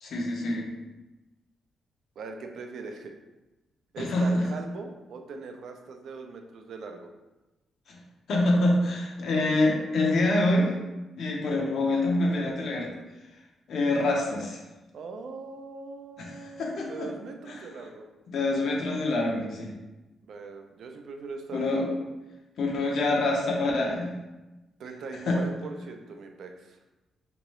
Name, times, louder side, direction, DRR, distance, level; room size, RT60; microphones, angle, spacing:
voice 1, 0.0-0.7 4.0-4.4 7.9-8.0 8.3-10.7 11.2-12.9 13.7-14.6 16.2-17.1 17.5-17.7 18.3-19.7 21.5-21.9 22.6-24.1 25.3-25.4, left 2 dB, 60° left, -1 dB, 0.8 m, -26 dB
voice 2, 2.2-3.1 3.9-7.1 14.9-18.1 20.2-21.9 24.8-26.8, right 4 dB, 65° right, 4 dB, 0.4 m, -41 dB
3.5 x 2.9 x 3.0 m, 1.1 s
cardioid pair, 145°, 0 cm